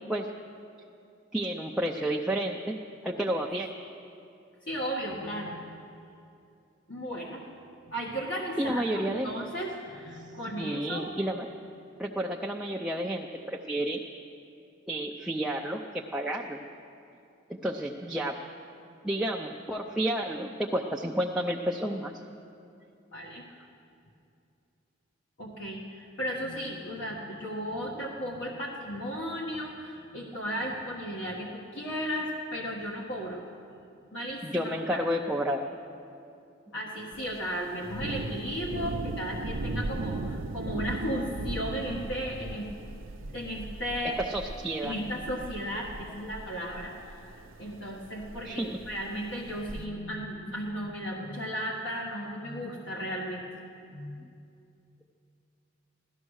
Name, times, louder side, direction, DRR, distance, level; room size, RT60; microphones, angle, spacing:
voice 1, 1.3-2.8 3.0-3.7 8.6-9.3 10.5-11.5 12.0-14.0 14.9-16.6 17.5-18.4 19.0-22.2 34.4-35.6 44.2-44.9 48.4-48.7 49.1-49.2 50.0-50.1 54.2-54.3, right 1 dB, 5° right, -1 dB, 0.5 m, -31 dB
voice 2, 4.7-5.7 6.9-7.4 7.8-11.1 23.1-23.4 25.4-33.4 34.1-35.0 36.7-42.7 43.2-44.2 44.8-53.4 53.9-54.2, equal, 65° left, -3 dB, 1.4 m, -35 dB
Thunder, 37.1-49.8, right 2 dB, 75° right, 0.6 m, -38 dB
16.0 x 13.0 x 6.4 m, 2.5 s
head